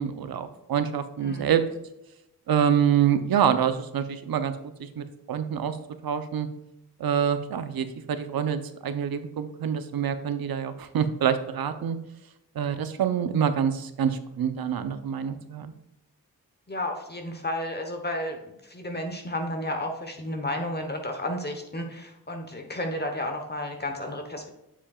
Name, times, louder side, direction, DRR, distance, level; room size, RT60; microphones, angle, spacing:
voice 1, 0.0-1.6 2.5-4.5 4.8-5.8 6.0-6.5 7.0-12.0 12.5-15.7, right 8 dB, 75° right, 10 dB, 0.7 m, -26 dB
voice 2, 1.2-1.5 16.7-18.4 18.6-24.5, left 1 dB, 25° left, 4 dB, 1.0 m, -32 dB
7.2 x 7.1 x 2.4 m, 0.88 s
cardioid pair, 70°, 37 cm